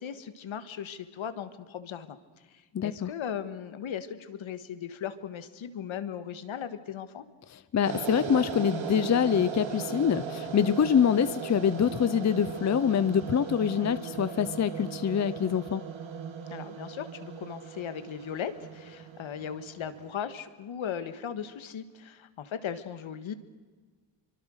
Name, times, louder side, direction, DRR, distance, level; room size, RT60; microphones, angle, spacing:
voice 1, 0.0-2.2 2.8-7.2 16.5-23.3, left 8 dB, 75° left, 11 dB, 1.7 m, -37 dB
voice 2, 2.7-3.1 7.5-15.8, left 8 dB, 35° left, 15 dB, 0.6 m, -25 dB
sound 1, 7.8-20.1, right 7 dB, 70° right, 2.6 m, -38 dB
26.5 x 24.5 x 6.5 m, 1.4 s
wide cardioid pair, 150°, 48 cm